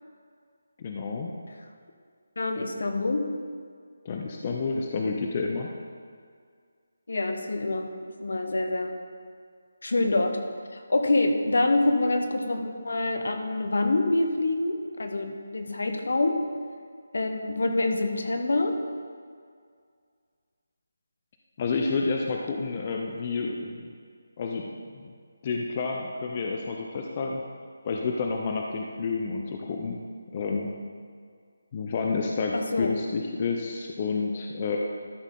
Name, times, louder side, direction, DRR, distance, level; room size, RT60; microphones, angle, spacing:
voice 1, 0.8-1.3 4.0-5.7 21.6-23.9 24.4-24.7 25.0-25.1 25.4-27.4 27.8-30.0 30.3-30.7 31.7-34.8, left 4 dB, 25° left, 1 dB, 0.5 m, -29 dB
voice 2, 2.4-3.3 7.1-7.9 8.2-8.9 9.8-10.4 10.7-16.4 17.1-18.8 32.5-32.9, left 2 dB, 70° left, 5 dB, 1.1 m, -26 dB
12.5 x 6.3 x 3.8 m, 2.1 s
figure-of-eight pair, 175°, 0 cm